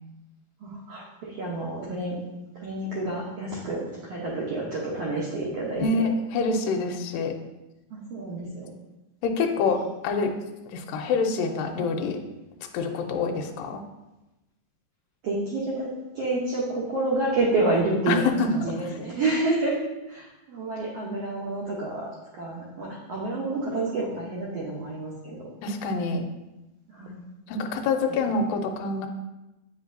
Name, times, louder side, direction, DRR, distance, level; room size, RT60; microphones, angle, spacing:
voice 1, 0.6-2.1 2.6-6.0 7.9-8.7 15.2-18.2 18.5-19.8 20.1-25.4 26.9-27.3 28.3-28.4, right 2 dB, 80° right, -5 dB, 1.4 m, -29 dB
voice 2, 5.8-7.3 9.2-10.3 10.7-12.2 12.7-13.8 18.1-18.5 25.6-26.2 27.5-29.1, left 4 dB, 80° left, 3 dB, 2.2 m, -26 dB
8.4 x 5.1 x 2.7 m, 0.98 s
omnidirectional pair, 4.3 m